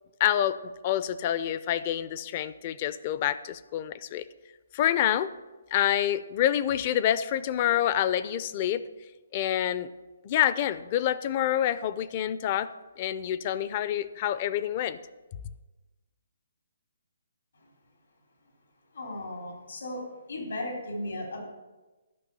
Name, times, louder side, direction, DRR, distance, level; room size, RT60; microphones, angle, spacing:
voice 1, 0.2-4.2 4.7-5.3 5.7-8.9 9.3-9.9 10.2-15.0, left 11 dB, 35° left, 15 dB, 0.5 m, -27 dB
voice 2, 18.9-20.0 20.3-21.4, left 1 dB, 85° left, -1 dB, 3.5 m, -35 dB
11.5 x 5.6 x 6.8 m, 1.2 s
hypercardioid pair, 155°, 0 cm